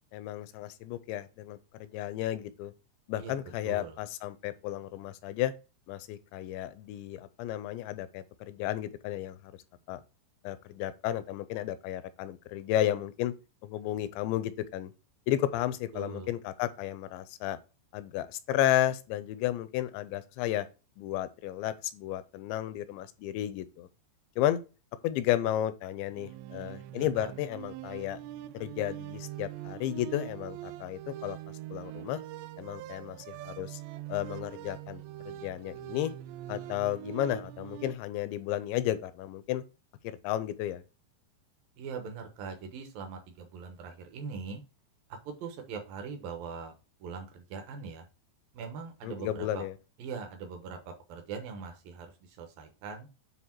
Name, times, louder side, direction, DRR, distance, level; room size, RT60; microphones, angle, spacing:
voice 1, 0.1-2.7 3.1-5.5 5.9-9.5 9.9-10.0 10.4-13.3 13.6-14.9 15.3-17.6 17.9-20.7 21.0-23.9 24.4-24.6 25.0-28.2 28.5-31.4 31.7-32.2 32.6-33.8 34.1-36.1 36.5-39.6 40.0-40.8 49.0-49.8, left 13 dB, 85° left, 2.8 m, -33 dB
voice 2, 3.6-4.0 15.9-16.3 26.9-27.3 41.8-44.6 45.3-46.7 47.0-48.0 48.5-49.6 50.0-52.1 52.4-53.1, right 5 dB, 70° right, 2.4 m, -41 dB
sound 1, 26.1-37.9, right 13 dB, 85° right, 2.6 m, -43 dB
9.5 x 3.4 x 4.5 m
omnidirectional pair, 5.3 m